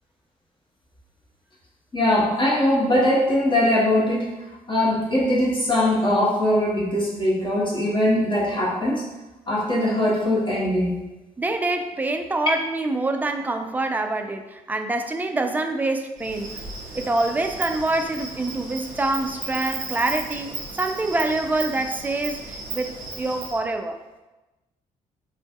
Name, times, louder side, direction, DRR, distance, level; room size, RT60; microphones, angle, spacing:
voice 1, 1.9-4.3 4.7-9.0 9.5-11.0, left 1 dB, 25° left, -4 dB, 1.1 m, -21 dB
voice 2, 11.4-16.5 16.9-24.0, right 2 dB, 10° right, 6 dB, 0.3 m, -26 dB
Insect, 16.2-23.6, right 3 dB, 50° right, 0.7 m, -35 dB
4.7 x 2.5 x 2.3 m, 1.1 s
figure-of-eight pair, 40°, 19 cm